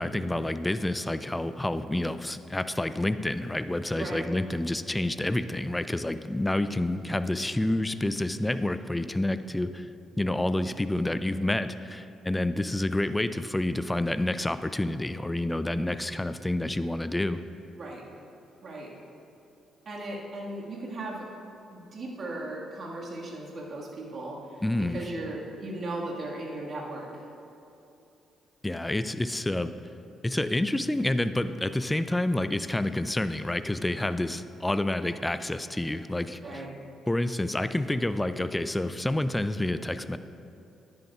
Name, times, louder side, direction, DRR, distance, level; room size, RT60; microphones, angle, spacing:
voice 1, 0.0-9.9 10.2-17.4 24.6-25.1 28.6-29.7 30.2-36.7 37.1-40.2, left 1 dB, 15° left, 12 dB, 0.4 m, -28 dB
voice 2, 3.9-4.3 17.8-18.0 18.6-18.9 19.9-21.3 21.7-27.2 36.4-36.7, right 2 dB, 50° right, -2 dB, 1.8 m, -37 dB
11.5 x 10.5 x 2.4 m, 2.8 s
hypercardioid pair, 45°, 0 cm